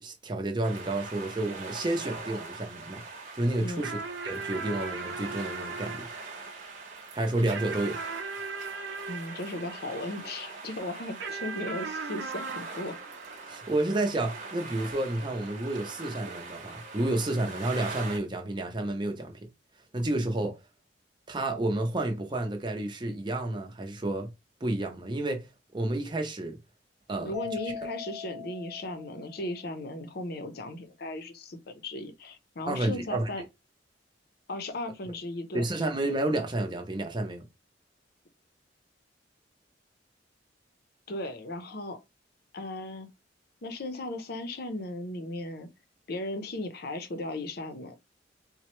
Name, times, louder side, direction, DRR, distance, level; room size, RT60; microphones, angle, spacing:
voice 1, 0.0-3.0 3.3-6.1 7.1-8.0 13.5-19.5 19.9-20.6 21.3-24.3 24.6-26.6 27.1-27.3 32.7-33.3 35.5-37.5, right 1 dB, 25° right, 0.6 m, -30 dB
sound 1, 0.6-18.2, right 3 dB, 45° right, 0.9 m, -43 dB
sound 2, 3.8-10.5 11.2-14.0, right 4 dB, 75° right, 0.7 m, -39 dB
voice 2, 9.1-12.9 27.2-33.4 34.5-35.6 41.1-42.0 42.5-43.1 43.6-45.7 46.1-48.0, left 1 dB, 55° left, 0.6 m, -36 dB
Mallet percussion, 27.3-29.8, left 7 dB, 20° left, 0.9 m, -41 dB
4.1 x 2.2 x 3.0 m
head